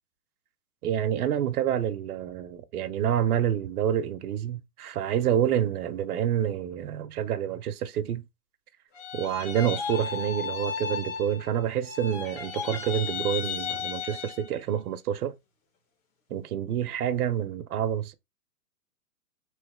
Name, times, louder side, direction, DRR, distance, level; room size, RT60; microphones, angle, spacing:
voice 1, 0.8-8.2 9.1-15.3 16.3-18.1, right 10 dB, 60° right, 0.7 m, -28 dB
sound 1, 8.9-11.6 11.8-14.6, left 6 dB, 50° left, 1.9 m, -34 dB
3.1 x 3.0 x 3.5 m
hypercardioid pair, 135°, 49 cm